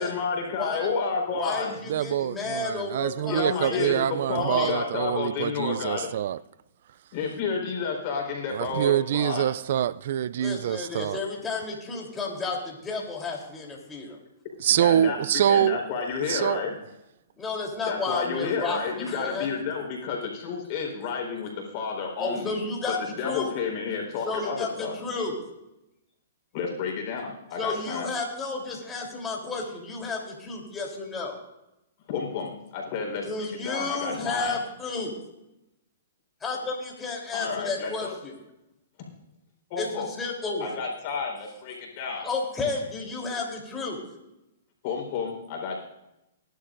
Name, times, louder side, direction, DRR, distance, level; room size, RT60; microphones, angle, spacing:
voice 1, 0.0-1.8 3.3-6.1 7.1-9.5 14.7-16.8 17.9-22.6 22.9-24.9 26.5-28.1 32.1-34.6 37.3-38.1 39.0-39.1 39.7-40.1 40.6-42.3 44.8-45.8, left 5 dB, 45° left, 4.2 m, -31 dB
voice 2, 0.6-0.9 1.3-3.9 4.3-4.7 10.4-14.2 17.4-19.5 22.2-23.0 23.2-23.5 24.2-25.4 27.6-31.4 33.2-35.1 36.4-38.3 39.8-40.7 42.2-44.0, left 3 dB, 15° left, 3.4 m, -32 dB
voice 3, 1.9-6.4 8.5-11.2 14.6-15.8 16.3-16.6, right 10 dB, 60° right, 0.3 m, -25 dB
20.5 x 11.5 x 2.6 m
hypercardioid pair, 130°, 0 cm